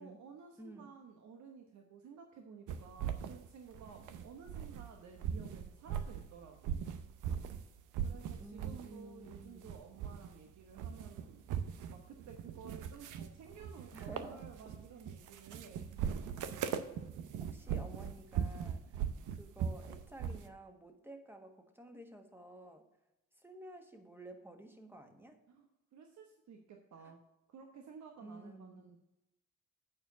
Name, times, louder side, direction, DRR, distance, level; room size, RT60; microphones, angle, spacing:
voice 1, 0.0-6.9 8.0-11.4 11.9-16.1 25.5-27.2 27.5-29.0, right 5 dB, 65° right, 3 dB, 1.1 m, -54 dB
voice 2, 0.6-0.9 8.4-9.7 13.9-14.4 17.4-19.0 19.3-22.9 23.3-25.4 27.0-27.1 28.2-28.8, right 1 dB, 5° right, 5 dB, 1.4 m, -52 dB
sound 1, 2.7-4.9 5.2-7.6 7.9-8.9 9.2-10.4 10.7-20.5, right 8 dB, 80° right, 0.8 m, -40 dB
8.9 x 4.7 x 6.7 m, 0.94 s
cardioid pair, 90°, 30 cm